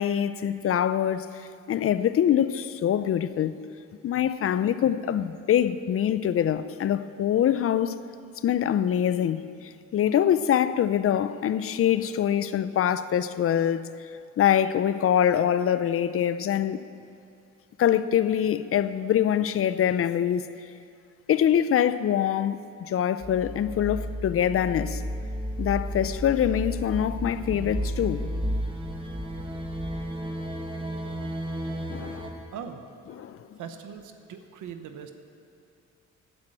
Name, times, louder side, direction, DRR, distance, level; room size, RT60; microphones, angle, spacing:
voice 1, 0.0-3.6 4.0-8.0 8.4-13.8 14.4-16.8 17.8-20.5 21.3-25.0 25.6-28.3 31.9-32.3 33.2-33.4, left 10 dB, 50° left, 0.5 m, -24 dB
sound 1, 23.2-32.3, equal, 15° right, 1.3 m, -32 dB
voice 2, 32.5-32.9 33.6-35.1, right 7 dB, 80° right, 1.0 m, -40 dB
9.6 x 8.8 x 7.8 m
cardioid pair, 90°, 30 cm